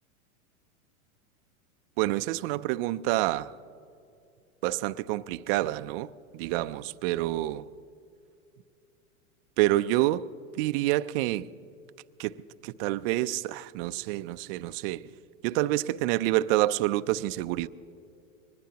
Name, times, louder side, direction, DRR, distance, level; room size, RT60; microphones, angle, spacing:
voice 1, 2.0-3.6 4.6-7.7 9.6-10.3 10.6-11.5 12.2-15.1 15.4-17.7, right 16 dB, 45° right, 0.4 m, -28 dB
24.0 x 20.0 x 2.9 m
hypercardioid pair, 125°, 42 cm